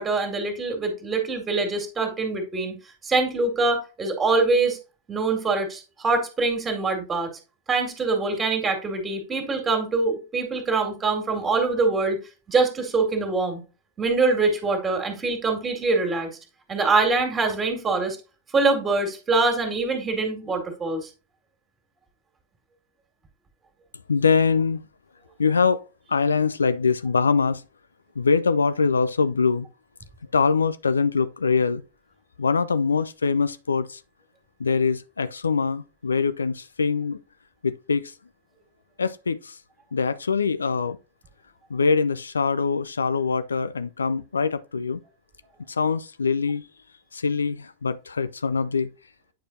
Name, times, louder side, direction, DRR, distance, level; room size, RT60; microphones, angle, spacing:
voice 1, 0.0-2.7 3.0-4.8 5.1-7.3 7.7-12.2 12.5-13.6 14.0-16.3 16.7-18.2 18.5-21.1, right 3 dB, 20° right, 2.1 m, -24 dB
voice 2, 24.1-24.8 25.4-27.6 28.2-29.7 30.3-31.8 32.4-34.0 34.6-37.2 37.6-38.1 39.0-39.6 39.9-41.0 41.7-45.0 45.7-46.7 47.1-48.9, left 5 dB, 75° left, 0.3 m, -23 dB
9.0 x 4.9 x 2.7 m
figure-of-eight pair, 90°, 0 cm